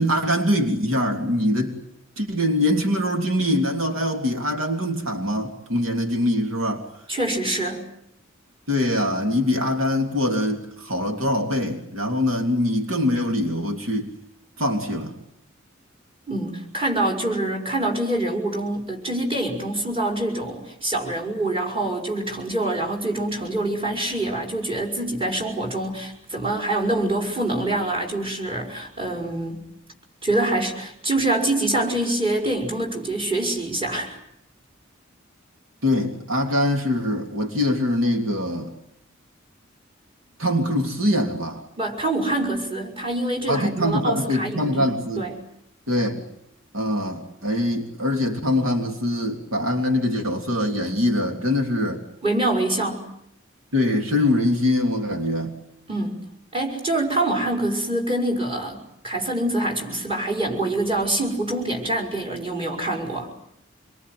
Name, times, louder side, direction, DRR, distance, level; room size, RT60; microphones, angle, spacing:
voice 1, 0.0-1.8 2.2-6.9 8.7-14.1 14.6-15.1 35.8-38.7 40.4-41.6 43.5-45.2 45.9-46.3 46.7-52.0 53.7-55.6, left 1 dB, 80° right, 4 dB, 3.2 m, -23 dB
voice 2, 7.1-7.8 16.3-29.6 30.2-34.2 41.8-45.4 52.2-53.1 55.9-56.2 56.5-58.8 59.0-63.3, right 1 dB, 25° right, 0 dB, 5.3 m, -25 dB
26.5 x 23.0 x 9.4 m, 0.75 s
head